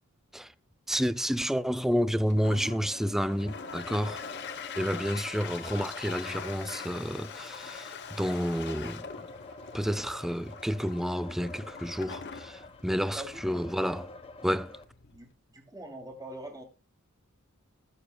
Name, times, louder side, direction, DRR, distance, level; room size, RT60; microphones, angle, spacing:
voice 1, 0.9-4.2 4.8-9.1 9.7-14.1 14.4-14.7, equal, ahead, 0.4 m, -30 dB
Toilet flush, 2.2-15.3, left 6 dB, 50° left, 1.0 m, -43 dB
sound 1, 2.8-14.8, left 3 dB, 25° left, 1.1 m, -48 dB
voice 2, 13.1-13.7 15.1-16.6, right 1 dB, 15° right, 2.8 m, -44 dB
20.0 x 7.0 x 2.2 m
head